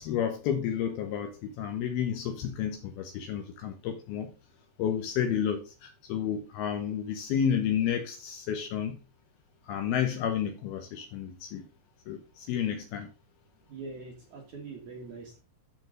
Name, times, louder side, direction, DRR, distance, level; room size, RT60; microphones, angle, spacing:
voice 1, 0.0-4.3 4.8-9.0 9.7-11.7 12.1-13.1, left 8 dB, 75° left, 2.4 m, -31 dB
voice 2, 13.7-15.4, right 4 dB, 60° right, 2.1 m, -43 dB
13.5 x 4.6 x 3.8 m
omnidirectional pair, 5.2 m